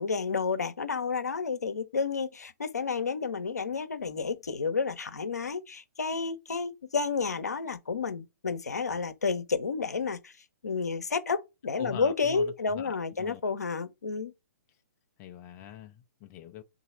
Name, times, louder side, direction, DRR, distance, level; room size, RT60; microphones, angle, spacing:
voice 1, 0.0-10.3 10.6-14.3, left 5 dB, 70° left, 0.8 m, -31 dB
voice 2, 11.8-13.4 15.2-16.6, left 10 dB, 25° left, 0.4 m, -44 dB
3.9 x 2.6 x 4.2 m
figure-of-eight pair, 120°, 9 cm